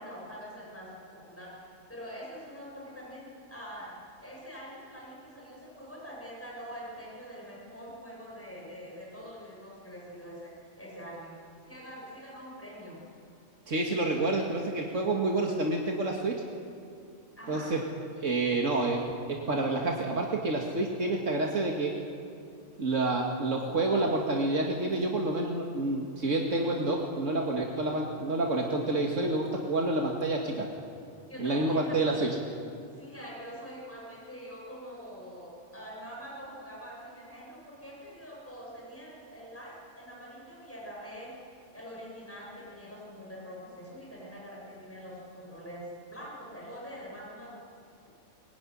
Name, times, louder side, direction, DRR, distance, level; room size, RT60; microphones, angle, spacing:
voice 1, 0.0-3.9 4.2-11.3 11.7-13.0 17.4-17.7 31.3-32.4 33.0-41.3 41.7-47.6, equal, 10° left, -4 dB, 7.4 m, -44 dB
voice 2, 13.7-16.3 17.5-17.8 18.2-19.0 19.3-21.9 22.8-30.7 31.4-32.3, right 2 dB, 80° right, 0 dB, 2.4 m, -28 dB
24.0 x 20.5 x 10.0 m, 2.4 s
omnidirectional pair, 1.3 m